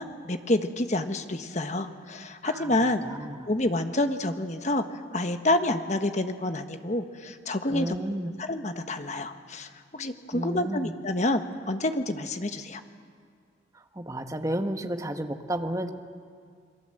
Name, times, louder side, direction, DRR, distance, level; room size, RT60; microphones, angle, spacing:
voice 1, 0.0-3.0 3.5-8.0 8.4-12.8, left 1 dB, 40° left, 7 dB, 1.3 m, -28 dB
voice 2, 2.6-3.4 7.7-8.3 10.3-10.9 13.9-15.9, right 1 dB, 15° right, 6 dB, 1.2 m, -32 dB
28.0 x 22.0 x 7.8 m, 2.1 s
head